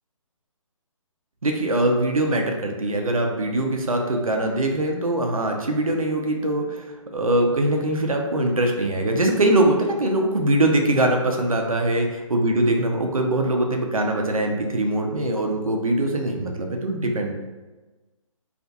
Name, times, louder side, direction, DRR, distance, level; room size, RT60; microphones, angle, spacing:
voice 1, 1.4-17.3, right 1 dB, 85° right, 2 dB, 0.5 m, -22 dB
2.6 x 2.4 x 2.2 m, 1.2 s
figure-of-eight pair, 140°, 17 cm